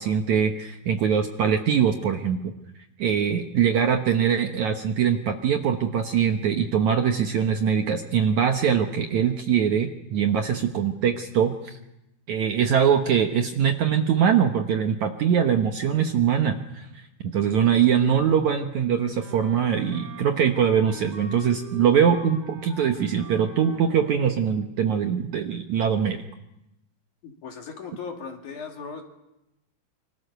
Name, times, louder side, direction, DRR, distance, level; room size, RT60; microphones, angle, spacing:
voice 1, 0.0-2.5 3.0-11.8 12.3-16.9 17.2-26.2, right 8 dB, 65° right, 5 dB, 2.0 m, -22 dB
Wind instrument woodwind instrument, 19.1-24.4, equal, 45° right, 5.7 m, -43 dB
voice 2, 27.2-29.0, left 5 dB, 55° left, 3 dB, 3.6 m, -37 dB
26.5 x 25.0 x 6.8 m, 0.91 s
omnidirectional pair, 4.5 m